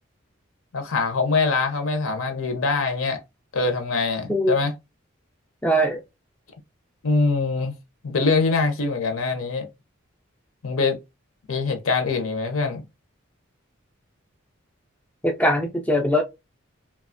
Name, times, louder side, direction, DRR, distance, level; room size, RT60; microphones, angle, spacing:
voice 1, 0.7-3.2 3.5-4.7 7.0-7.7 8.0-9.7 10.6-11.0 11.5-12.8, left 4 dB, 75° left, 0.7 m, -23 dB
voice 2, 5.6-6.0 15.2-16.2, equal, 5° left, 0.3 m, -21 dB
2.7 x 2.3 x 2.5 m
head